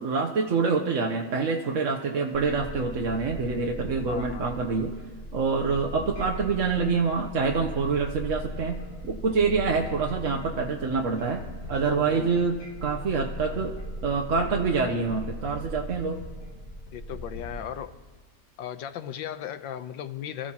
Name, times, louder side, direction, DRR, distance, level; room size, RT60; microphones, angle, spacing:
voice 1, 0.0-4.9 5.3-13.8 14.0-16.2, right 4 dB, 50° right, 2 dB, 1.1 m, -26 dB
sound 1, 2.3-17.6, equal, 55° left, 2.4 m, -38 dB
voice 2, 4.1-4.5 5.5-5.7 11.8-12.4 16.9-18.0 18.6-20.5, left 10 dB, 90° left, 10 dB, 1.5 m, -36 dB
28.5 x 15.5 x 2.9 m, 1.3 s
omnidirectional pair, 2.0 m